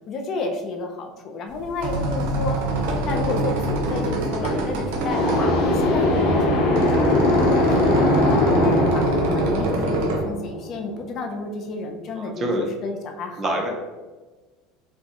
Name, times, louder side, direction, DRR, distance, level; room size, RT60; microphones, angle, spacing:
voice 1, 0.1-2.6 3.0-9.0 9.3-13.7, left 3 dB, 40° left, 3 dB, 0.5 m, -31 dB
sound 1, 1.5-10.2, right 2 dB, 80° right, 0.8 m, -26 dB
Audio entrega stems sonido cola, 4.9-5.6, equal, 15° left, 0.8 m, -37 dB
sound 2, 5.1-10.8, left 1 dB, 75° left, 1.5 m, -20 dB
voice 2, 12.1-12.7 13.4-13.7, right 1 dB, 35° right, 2 dB, 0.7 m, -26 dB
5.2 x 2.3 x 2.8 m, 1.3 s
supercardioid pair, 130°, 0 cm